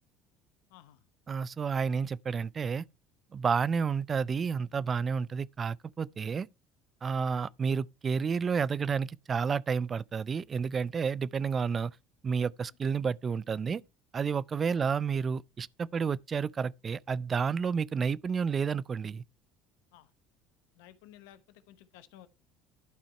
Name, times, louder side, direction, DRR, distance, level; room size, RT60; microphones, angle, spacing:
voice 1, 0.7-1.1 1.9-2.0 11.8-11.9 14.7-14.9 19.9-20.1 20.7-22.3, left 12 dB, 75° left, 0.9 m, -56 dB
voice 2, 1.3-2.8 3.3-6.5 7.0-11.9 12.2-13.8 14.1-19.2, right 6 dB, 35° right, 0.4 m, -30 dB
11.5 x 4.6 x 4.4 m
hypercardioid pair, 70°, 0 cm